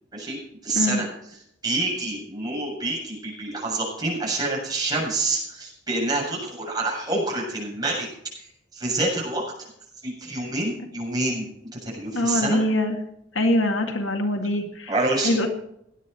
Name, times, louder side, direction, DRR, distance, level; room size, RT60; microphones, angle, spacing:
voice 1, 0.1-1.1 1.6-8.1 8.4-9.4 10.0-12.6 14.9-15.5, right 2 dB, 20° right, -4 dB, 7.5 m, -27 dB
voice 2, 12.1-13.0 13.3-14.9 15.2-15.5, left 1 dB, 85° left, 4 dB, 2.1 m, -23 dB
17.5 x 11.0 x 4.6 m, 0.74 s
head